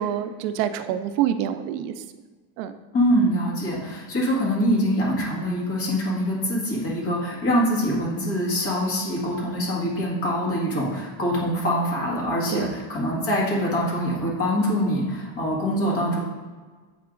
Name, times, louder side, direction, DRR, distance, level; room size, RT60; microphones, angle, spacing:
voice 1, 0.0-1.9 2.6-2.7 12.5-12.7, right 10 dB, 80° right, 10 dB, 0.6 m, -26 dB
voice 2, 2.9-16.2, equal, 30° left, -5 dB, 1.6 m, -24 dB
8.4 x 4.7 x 2.5 m, 1.4 s
cardioid pair, 170°, 48 cm